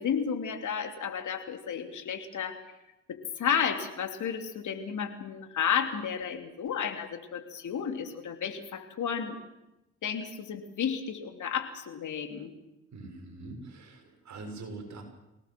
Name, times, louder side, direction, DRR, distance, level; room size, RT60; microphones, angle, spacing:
voice 1, 0.0-2.6 3.1-9.4 10.0-12.5, left 7 dB, 60° left, 6 dB, 3.0 m, -32 dB
voice 2, 12.9-15.0, right 3 dB, 55° right, 3 dB, 7.1 m, -43 dB
25.0 x 18.0 x 7.6 m, 0.92 s
hypercardioid pair, 45°, 34 cm